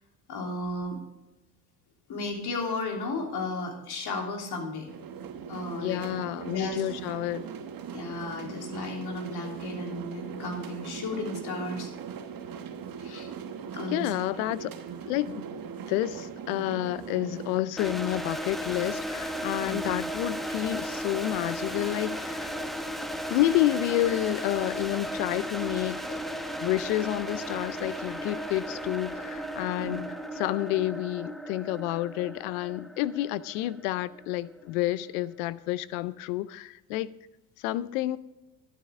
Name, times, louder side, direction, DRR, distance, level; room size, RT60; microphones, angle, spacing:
voice 1, 0.3-1.0 2.1-4.9 5.5-6.0 6.5-6.8 7.9-11.9 13.0-13.3 13.7-14.1 19.6-19.9 29.8-30.0, left 2 dB, 60° left, 3.3 m, -34 dB
sound 1, 4.9-17.6, right 7 dB, 50° right, 1.3 m, -39 dB
voice 2, 5.7-7.5 13.9-14.7 15.1-15.5 15.9-22.5 23.3-26.0 26.6-37.1 37.6-38.2, left 15 dB, 85° left, 0.6 m, -29 dB
sound 2, 17.8-34.6, equal, ahead, 1.0 m, -35 dB
12.0 x 8.9 x 3.6 m
supercardioid pair, 75°, 44 cm